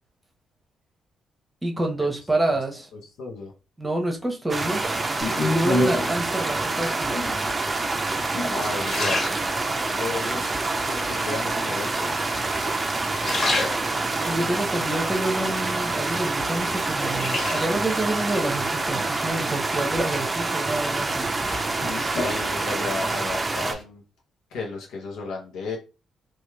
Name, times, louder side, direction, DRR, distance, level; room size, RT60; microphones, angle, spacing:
voice 1, 1.6-2.9 3.8-4.8 5.4-7.2 14.2-21.3, right 1 dB, 15° right, 0.9 m, -28 dB
voice 2, 2.9-3.5 8.4-9.3 9.9-12.1 22.1-24.0 24.5-25.8, left 3 dB, 80° left, 0.7 m, -34 dB
sound 1, 4.5-23.7, right 3 dB, 30° right, 0.5 m, -27 dB
sound 2, 5.2-6.3 7.0-7.5 8.1-10.0 10.5-11.1 12.0-12.6 13.0-14.3 14.8-16.0 16.4-18.0 19.4-20.0 20.4-23.1 23.3-23.8, left 2 dB, 50° left, 1.5 m, -29 dB
2.9 x 2.4 x 2.3 m
supercardioid pair, 50°, 0 cm